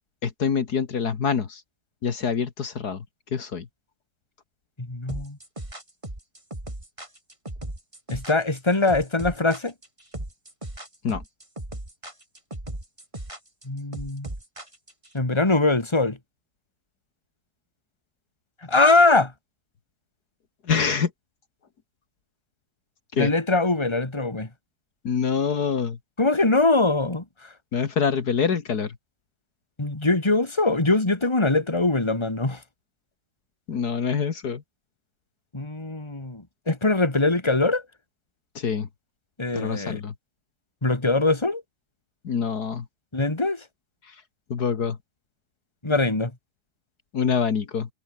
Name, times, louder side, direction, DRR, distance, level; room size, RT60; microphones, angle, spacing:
voice 1, 0.2-1.6 2.0-3.0 3.3-3.7 11.0-11.2 20.7-21.1 23.1-23.3 25.0-26.0 27.7-28.9 33.7-34.6 38.6-38.9 39.5-40.1 42.2-42.8 44.5-45.0 47.1-47.9, left 6 dB, 70° left, 2.2 m, -25 dB
voice 2, 4.8-5.4 8.1-9.7 13.7-14.3 15.1-16.2 18.7-19.3 23.2-24.5 26.2-27.5 29.8-32.6 35.5-37.8 39.4-40.0 40.8-41.6 43.1-43.6 45.8-46.3, left 2 dB, 15° left, 2.7 m, -22 dB
sound 1, 5.1-15.1, right 1 dB, 20° right, 4.0 m, -37 dB
omnidirectional pair, 1.8 m